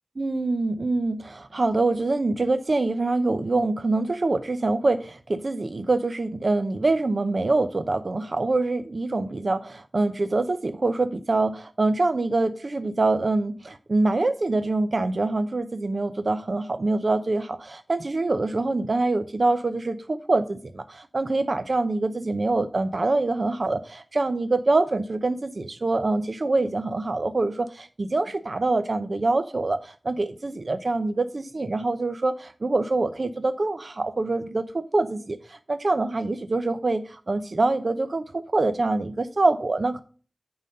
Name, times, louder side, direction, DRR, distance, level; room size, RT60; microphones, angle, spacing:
voice 1, 0.2-40.0, right 2 dB, 70° right, 10 dB, 0.6 m, -25 dB
9.2 x 4.0 x 6.5 m, 0.39 s
wide cardioid pair, 70°, 0 cm